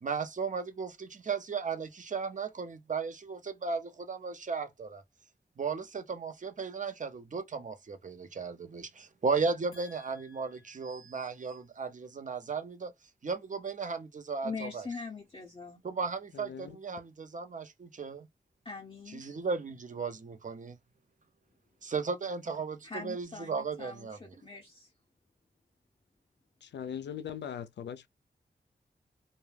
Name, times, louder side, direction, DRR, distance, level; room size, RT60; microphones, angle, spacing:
voice 1, 0.0-5.0 5.6-12.9 13.2-14.9 15.8-18.3 19.1-20.8 21.8-24.3, right 5 dB, 45° right, 0.7 m, -35 dB
voice 2, 9.7-11.1 14.4-15.8 18.6-19.3 22.8-24.9, left 4 dB, 30° left, 0.6 m, -43 dB
voice 3, 16.3-16.8 26.6-28.1, left 8 dB, 85° left, 0.4 m, -40 dB
2.2 x 2.2 x 3.2 m
cardioid pair, 60°, 18 cm